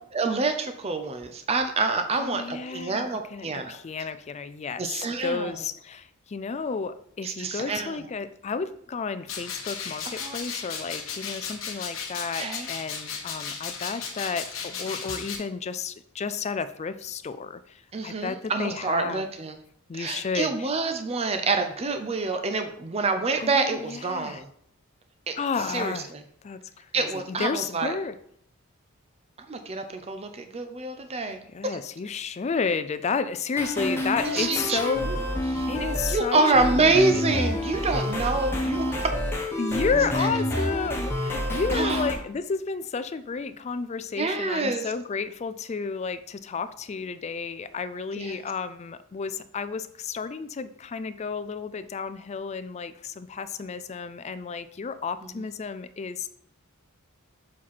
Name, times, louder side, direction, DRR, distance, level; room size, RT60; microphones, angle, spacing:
voice 1, 0.1-3.8 4.8-5.5 7.2-8.0 10.2-10.4 12.4-12.7 17.9-19.6 19.9-24.5 25.3-25.4 25.7-26.0 26.9-27.9 29.5-31.8 34.2-35.2 35.5-35.7 36.1-39.1 40.2-40.3 41.7-42.0 44.2-44.8 48.1-48.4 55.2-55.4, right 3 dB, 30° right, 7 dB, 0.5 m, -27 dB
voice 2, 2.1-19.2 19.9-20.7 23.4-24.4 25.4-26.1 26.4-28.1 31.5-35.1 35.7-36.4 36.8-37.9 39.6-56.3, left 5 dB, 30° left, 12 dB, 0.3 m, -32 dB
sound 1, 9.3-15.4, left 6 dB, 70° left, 1.2 m, -35 dB
sound 2, 33.5-42.1, left 1 dB, 10° left, 1.2 m, -28 dB
7.4 x 4.2 x 4.2 m, 0.67 s
head